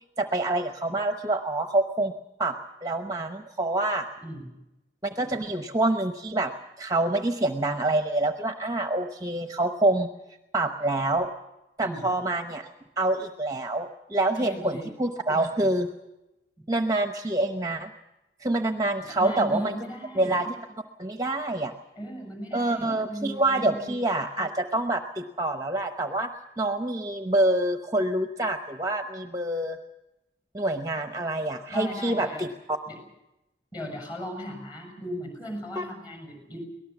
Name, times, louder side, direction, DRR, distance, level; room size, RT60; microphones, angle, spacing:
voice 1, 0.2-2.1 2.4-2.5 2.8-4.1 5.0-6.5 6.8-10.1 10.5-11.3 11.8-15.9 16.7-17.9 18.4-19.7 20.1-20.5 21.0-21.7 22.5-26.3 26.6-29.8 30.5-32.8 35.8-35.9, right 2 dB, 20° right, 6 dB, 0.8 m, -26 dB
voice 2, 14.4-14.9 19.0-20.3 22.0-23.9 31.7-32.5 32.9-33.0 33.7-36.6, equal, 25° left, 4 dB, 6.7 m, -37 dB
23.5 x 18.5 x 7.2 m, 0.94 s
head